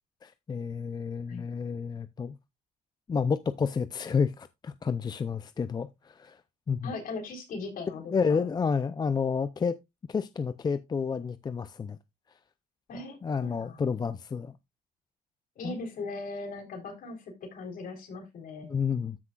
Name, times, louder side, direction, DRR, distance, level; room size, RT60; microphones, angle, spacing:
voice 1, 0.2-2.4 3.1-6.4 6.7-6.9 8.1-9.8 10.1-12.0 13.2-14.6 15.6-15.8 18.6-19.2, left 5 dB, 25° left, 0.5 m, -30 dB
voice 2, 6.8-8.5 12.9-13.8 15.6-18.7, left 3 dB, 55° left, 3.9 m, -39 dB
13.5 x 6.0 x 2.4 m
cardioid pair, 110°, 17 cm